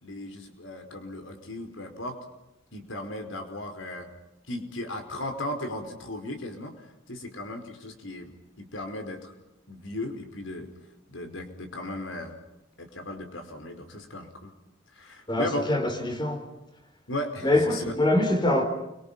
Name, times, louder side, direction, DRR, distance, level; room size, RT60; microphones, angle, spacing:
voice 1, 0.0-2.2 2.7-4.1 4.5-6.7 7.1-9.3 9.7-10.7 11.1-12.3 12.8-14.5 14.9-15.7 17.1-17.8, left 1 dB, 90° left, 4.9 m, -36 dB
voice 2, 15.3-16.5 17.4-18.6, left 1 dB, 25° left, 4.5 m, -24 dB
29.5 x 24.5 x 5.7 m
head